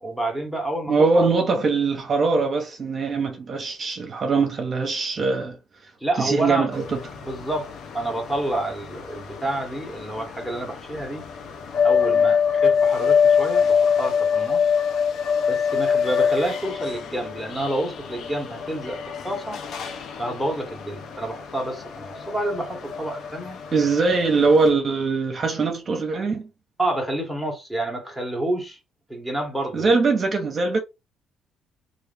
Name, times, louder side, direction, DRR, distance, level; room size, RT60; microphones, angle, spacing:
voice 1, 0.0-1.3 6.0-6.7 7.2-11.2 11.8-14.7 15.5-19.6 20.2-23.6 26.8-28.8 29.1-29.9, right 1 dB, 5° left, 1.2 m, -29 dB
voice 2, 0.9-5.6 6.2-6.8 23.7-26.5 29.7-30.8, right 4 dB, 40° right, 0.9 m, -22 dB
sound 1, 6.7-24.7, left 7 dB, 65° left, 0.7 m, -25 dB
3.0 x 2.6 x 3.3 m
cardioid pair, 100°, 0 cm